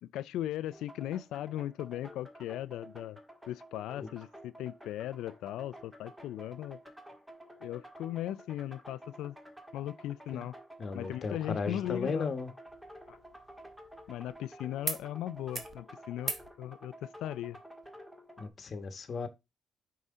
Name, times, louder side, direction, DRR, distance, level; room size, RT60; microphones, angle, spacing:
voice 1, 0.0-3.2 3.5-6.8 7.6-9.4 9.7-10.5 10.9-12.3 13.1-13.2 14.1-16.3 16.6-17.6, left 13 dB, 85° left, 0.3 m, -38 dB
sound 1, 0.7-18.5, equal, 5° right, 1.6 m, -51 dB
voice 2, 10.8-12.5 18.4-19.3, left 4 dB, 45° left, 1.2 m, -35 dB
sound 2, 12.7-14.4 14.8-15.0 15.3-15.8 16.2-16.5 17.8-17.9, right 4 dB, 35° right, 1.1 m, -40 dB
5.5 x 4.7 x 3.7 m
cardioid pair, 90°, 0 cm